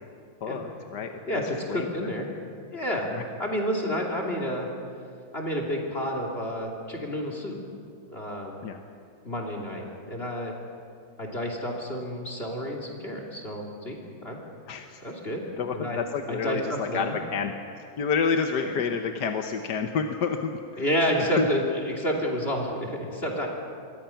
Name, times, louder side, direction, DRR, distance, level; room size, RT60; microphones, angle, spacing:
voice 1, 0.4-1.4 1.7-2.1 3.1-3.2 8.6-8.8 14.7-15.0 15.6-17.5 18.0-20.9 21.1-21.5, left 6 dB, 60° left, 5 dB, 1.5 m, -29 dB
voice 2, 1.2-2.3 2.7-3.1 3.4-4.7 5.3-7.6 8.1-8.6 9.2-10.5 11.2-14.4 15.0-15.4 15.7-16.0 16.3-17.2 20.8-23.5, equal, 30° left, 1 dB, 3.1 m, -30 dB
27.0 x 23.0 x 5.8 m, 2.4 s
omnidirectional pair, 2.2 m